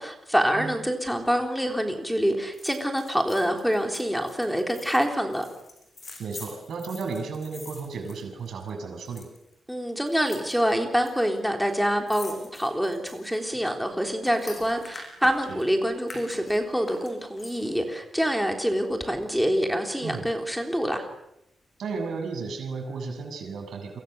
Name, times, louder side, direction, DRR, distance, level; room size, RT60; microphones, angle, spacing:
voice 1, 0.0-5.5 9.7-21.1, equal, ahead, 3 dB, 3.5 m, -26 dB
sound 1, 2.5-8.7 9.0-9.5 10.1-11.1 11.4-11.5 11.7-15.6 16.0-17.8 18.2-18.3, left 2 dB, 30° left, 6.8 m, -45 dB
voice 2, 6.2-9.3 15.5-15.6 20.0-20.3 21.8-24.0, right 4 dB, 65° right, 3 dB, 6.9 m, -34 dB
29.0 x 24.0 x 6.9 m, 0.83 s
wide cardioid pair, 170°, 0 cm